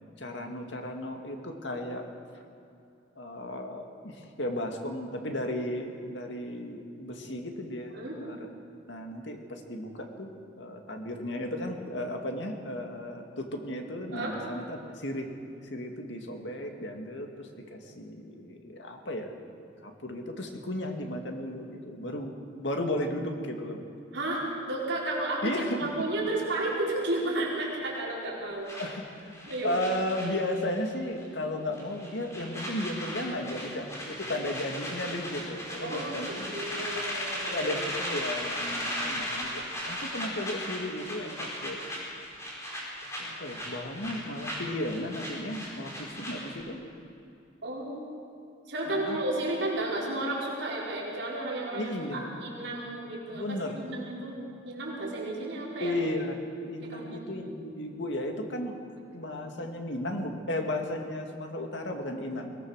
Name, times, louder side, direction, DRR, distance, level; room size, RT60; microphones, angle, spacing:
voice 1, 0.2-2.1 3.2-7.9 8.2-8.5 8.9-10.3 10.6-15.3 15.6-19.3 19.8-22.3 22.6-23.8 25.4-25.9 28.8-29.3 29.6-36.9 37.5-41.8 43.0-46.8 48.9-49.2 51.7-52.4 53.3-53.9 55.8-58.8 59.1-62.6, left 1 dB, 70° left, 3 dB, 2.4 m, -34 dB
voice 2, 24.1-28.7 29.4-29.7 35.8-38.0 47.6-48.0 48.7-54.4 54.6-55.9 56.8-57.0, right 2 dB, 75° right, -5 dB, 4.9 m, -33 dB
sound 1, 28.7-30.9 31.2-31.4 31.7-46.6, equal, 15° left, 4.8 m, -37 dB
22.5 x 18.5 x 6.6 m, 2.6 s
head